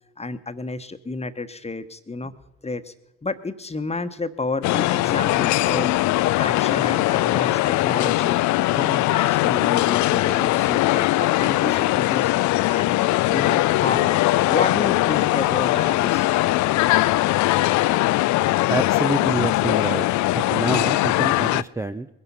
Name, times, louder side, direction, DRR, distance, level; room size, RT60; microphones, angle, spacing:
voice 1, 0.2-2.3 2.6-2.9 3.2-5.9 6.4-8.4 8.7-12.3 12.7-14.2 14.5-16.5, left 3 dB, 20° left, 10 dB, 1.3 m, -31 dB
sound 1, 4.6-21.6, left 17 dB, 55° left, 0.5 m, -20 dB
voice 2, 18.7-20.1 20.3-22.1, right 2 dB, 10° right, 8 dB, 0.6 m, -27 dB
21.0 x 11.0 x 5.7 m, 0.90 s
hypercardioid pair, 50°, 34 cm